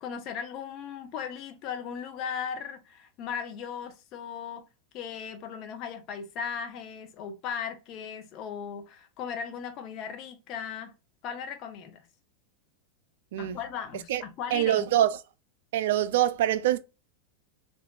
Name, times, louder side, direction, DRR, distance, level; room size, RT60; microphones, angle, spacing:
voice 1, 0.0-4.7 4.9-10.9 11.2-12.0 13.4-14.9, left 7 dB, 45° left, 0.7 m, -37 dB
voice 2, 14.5-15.1 15.7-16.8, right 12 dB, 70° right, 0.4 m, -24 dB
3.4 x 2.6 x 2.3 m
hypercardioid pair, 100°, 0 cm